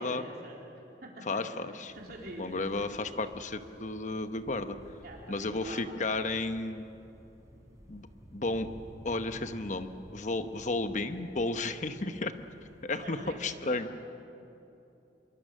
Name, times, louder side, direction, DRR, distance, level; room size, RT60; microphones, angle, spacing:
voice 1, 0.0-1.4 1.9-2.9 5.0-6.2 13.0-13.8, right 1 dB, 55° right, -2 dB, 3.6 m, -46 dB
voice 2, 1.3-1.9 2.4-4.8 5.3-6.8 7.9-8.1 8.3-8.7 9.0-12.3 12.8-13.9, left 2 dB, 40° left, 9 dB, 1.0 m, -33 dB
sound 1, 1.9-13.4, equal, 15° right, 4.4 m, -53 dB
26.0 x 23.0 x 6.5 m, 2.9 s
head